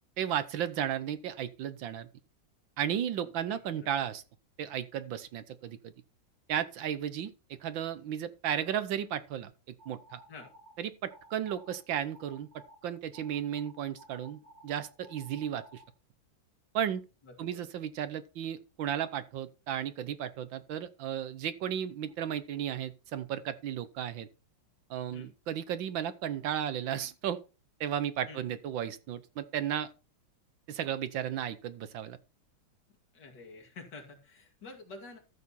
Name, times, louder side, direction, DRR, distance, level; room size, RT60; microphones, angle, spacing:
voice 1, 0.2-2.1 2.8-4.2 4.6-5.9 6.5-10.2 10.8-12.5 12.8-15.8 16.7-17.0 17.4-24.3 24.9-27.4 27.8-29.9 30.7-32.2, right 9 dB, 70° right, 1.5 m, -34 dB
voice 2, 3.5-3.9 10.3-10.5 17.2-17.6 25.1-25.3 28.3-28.4 33.1-35.2, left 3 dB, 55° left, 3.0 m, -49 dB
sound 1, 9.8-10.7 11.1-11.8 12.1-12.8 13.1-15.9, right 1 dB, 30° right, 2.4 m, -55 dB
13.5 x 6.8 x 4.2 m
omnidirectional pair, 2.3 m